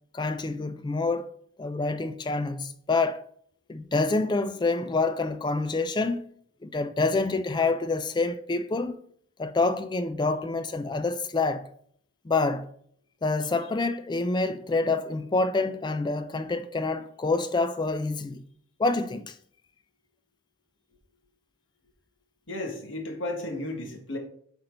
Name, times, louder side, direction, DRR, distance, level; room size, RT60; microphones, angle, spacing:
voice 1, 0.1-1.3 1.6-3.2 3.7-6.2 6.6-9.0 9.4-11.7 12.3-12.7 13.2-18.4 18.8-19.3, left 3 dB, 20° left, 0.3 m, -27 dB
voice 2, 22.5-24.2, left 1 dB, 75° left, 1.7 m, -33 dB
7.9 x 4.4 x 5.3 m
head